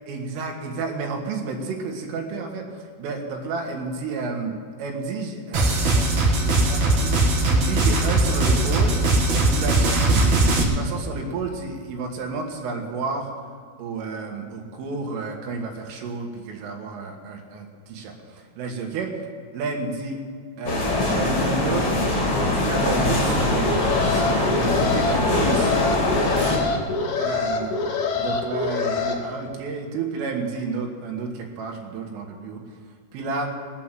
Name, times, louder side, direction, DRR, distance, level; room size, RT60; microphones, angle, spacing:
voice 1, 0.1-2.7 3.0-8.9 9.3-13.3 13.8-19.1 19.5-20.2 20.6-21.9 22.3-25.7 27.2-27.8 28.2-32.6 33.1-33.6, right 4 dB, 90° right, 2 dB, 4.3 m, -31 dB
sound 1, 5.5-10.6, right 2 dB, 60° right, 2.0 m, -20 dB
sound 2, 20.7-26.6, left 2 dB, 35° left, 3.4 m, -22 dB
Alarm, 23.5-29.1, left 4 dB, 90° left, 1.6 m, -26 dB
19.5 x 8.3 x 7.4 m, 2.1 s
omnidirectional pair, 5.6 m